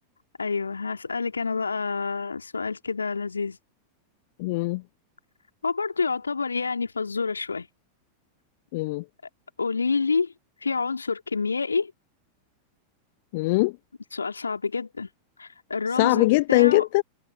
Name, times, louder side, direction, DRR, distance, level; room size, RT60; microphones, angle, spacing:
voice 1, 0.4-3.6 5.6-7.7 9.6-10.3 10.6-11.9 14.1-15.1 15.4-16.8, left 4 dB, 75° left, 2.8 m, -28 dB
voice 2, 4.4-4.8 8.7-9.0 13.3-13.8 15.9-17.0, left 23 dB, 50° left, 0.7 m, -21 dB
figure-of-eight pair, 90°, 0 cm